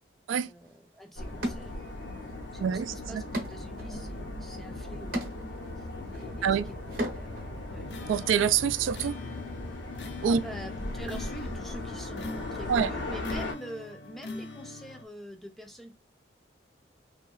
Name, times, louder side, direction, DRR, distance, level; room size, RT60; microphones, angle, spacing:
voice 1, 0.4-1.9 2.5-5.2 5.8-7.8 10.3-15.9, right 1 dB, ahead, 0.4 m, -45 dB
sound 1, 0.6-0.7 1.4-2.3 2.7-7.5, right 1 dB, 50° right, 0.8 m, -38 dB
sound 2, 1.2-13.5, left 2 dB, 90° left, 1.3 m, -38 dB
voice 2, 2.6-3.2 6.4-6.7 8.1-9.1 10.2-10.4 12.7-12.9, right 7 dB, 85° right, 0.3 m, -26 dB
sound 3, 7.8-15.0, left 3 dB, 60° left, 0.5 m, -43 dB
3.0 x 2.8 x 2.3 m
head